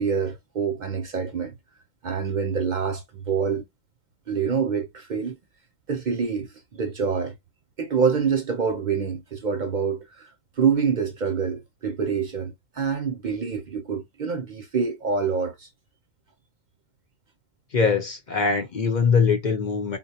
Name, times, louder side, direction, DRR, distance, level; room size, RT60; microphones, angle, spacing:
voice 1, 0.0-1.5 2.0-3.6 4.3-5.4 5.9-7.3 7.8-10.3 10.6-15.7, right 6 dB, 50° right, 0.6 m, -26 dB
voice 2, 17.7-20.0, left 5 dB, 45° left, 0.8 m, -22 dB
3.9 x 2.2 x 2.8 m
omnidirectional pair, 1.1 m